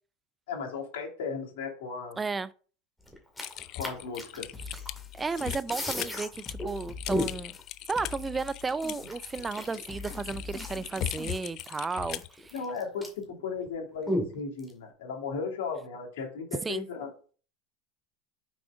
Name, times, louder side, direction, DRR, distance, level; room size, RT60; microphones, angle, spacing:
voice 1, 0.5-2.2 3.7-4.5 12.5-17.1, left 5 dB, 80° left, 2.5 m, -36 dB
voice 2, 2.2-2.5 5.1-7.6 7.9-12.5 16.6-16.9, right 4 dB, 15° right, 0.4 m, -33 dB
sound 1, 3.1-5.0 5.3-6.3 6.6-6.7 7.1-7.6 8.2-8.3 8.7-13.3 13.6-13.7 14.1-14.7, equal, 5° left, 2.1 m, -34 dB
Typing, 3.4-12.3, left 13 dB, 50° left, 0.4 m, -39 dB
sound 2, 4.5-11.4, left 5 dB, 20° left, 0.9 m, -45 dB
6.2 x 4.8 x 3.7 m
supercardioid pair, 115°, 0 cm